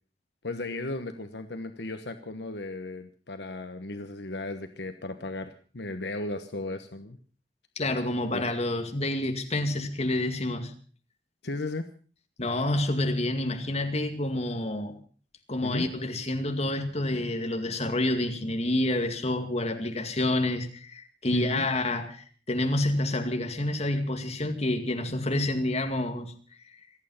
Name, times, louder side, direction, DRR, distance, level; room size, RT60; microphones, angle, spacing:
voice 1, 0.4-7.2 8.3-8.5 11.4-11.8 15.6-15.9 21.3-21.7, left 2 dB, 70° left, 1.2 m, -35 dB
voice 2, 7.8-10.7 12.4-15.0 15.5-26.3, left 1 dB, 35° left, 2.2 m, -28 dB
26.5 x 9.0 x 5.6 m
head